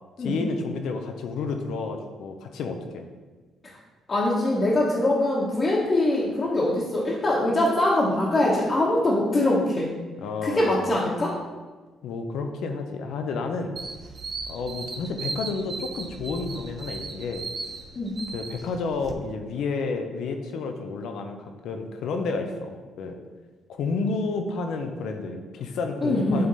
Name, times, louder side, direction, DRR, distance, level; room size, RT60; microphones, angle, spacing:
voice 1, 0.2-3.1 10.2-10.9 12.0-13.8 14.5-17.4 18.0-23.2 23.7-26.5, left 4 dB, 80° left, 5 dB, 0.7 m, -31 dB
voice 2, 4.1-9.9 10.4-11.3 17.9-18.2 26.0-26.5, left 1 dB, 35° left, -7 dB, 1.3 m, -23 dB
sound 1, 13.8-19.1, right 4 dB, 45° right, 0.7 m, -37 dB
7.6 x 3.7 x 4.1 m, 1.3 s
cardioid pair, 90°, 0 cm